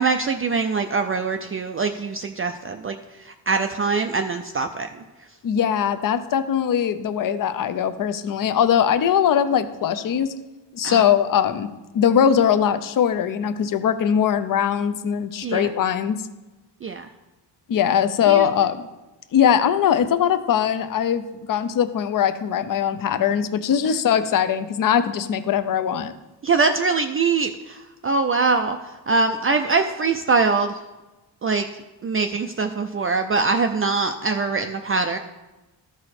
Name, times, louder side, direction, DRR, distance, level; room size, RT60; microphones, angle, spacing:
voice 1, 0.0-3.0 3.5-4.9 10.8-11.0 15.4-15.7 16.8-17.1 18.3-18.5 26.4-27.8 28.0-28.8 29.1-30.8 31.4-31.7 32.0-35.2, right 4 dB, 30° right, 6 dB, 0.4 m, -22 dB
voice 2, 5.4-10.3 10.7-11.7 11.9-16.2 17.7-18.9 19.3-21.2 21.5-26.1, left 8 dB, 50° left, 11 dB, 0.6 m, -21 dB
13.5 x 4.8 x 4.2 m, 1.1 s
cardioid pair, 135°, 44 cm